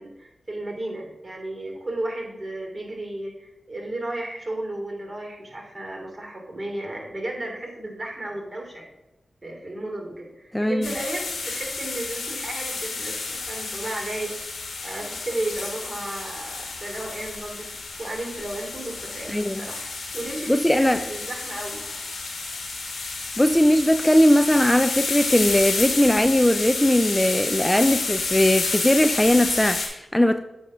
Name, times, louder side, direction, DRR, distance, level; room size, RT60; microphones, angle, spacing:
voice 1, 0.0-8.8 9.4-14.3 14.8-17.7 18.0-19.3 19.6-22.3, right 1 dB, 35° right, 0 dB, 2.5 m, -34 dB
voice 2, 10.5-10.9 19.3-19.7 20.5-21.0 23.4-30.4, left 1 dB, 10° left, 9 dB, 0.3 m, -19 dB
sound 1, 10.8-29.9, left 3 dB, 90° left, 1.3 m, -30 dB
8.1 x 2.7 x 5.9 m, 0.92 s
cardioid pair, 50°, 0 cm